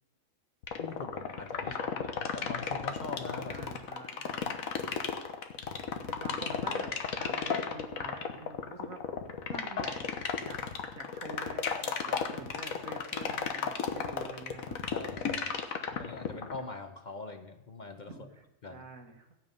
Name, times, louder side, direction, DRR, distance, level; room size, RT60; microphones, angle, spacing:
sound 1, 0.6-16.6, left 7 dB, 90° left, 1.5 m, -33 dB
voice 1, 0.8-3.7 14.9-15.6 15.9-18.3 18.6-18.9, left 3 dB, 40° left, 6 dB, 0.8 m, -43 dB
voice 2, 1.6-2.0 3.5-4.3 6.1-9.0 9.5-10.6 10.9-14.8 18.1-19.3, right 3 dB, 85° right, 4 dB, 1.9 m, -47 dB
15.0 x 9.0 x 5.4 m, 0.89 s
omnidirectional pair, 1.4 m